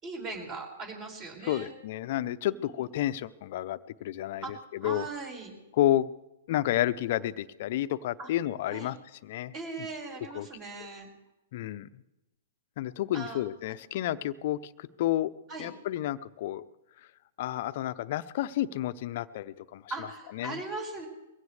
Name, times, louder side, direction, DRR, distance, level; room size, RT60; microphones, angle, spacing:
voice 1, 0.0-1.7 2.5-2.8 4.4-4.5 4.8-5.5 8.2-8.3 8.7-8.9 9.5-11.1 13.1-13.8 15.5-15.7 19.9-21.1, right 3 dB, 30° right, 2 dB, 5.3 m, -39 dB
voice 2, 1.4-5.1 5.7-6.1 6.5-9.0 9.2-9.9 10.3-10.5 11.5-12.0 12.8-15.3 15.6-16.6 17.4-20.1 20.3-20.6, left 13 dB, 55° left, 14 dB, 0.6 m, -31 dB
23.0 x 16.5 x 3.3 m, 0.94 s
hypercardioid pair, 125°, 0 cm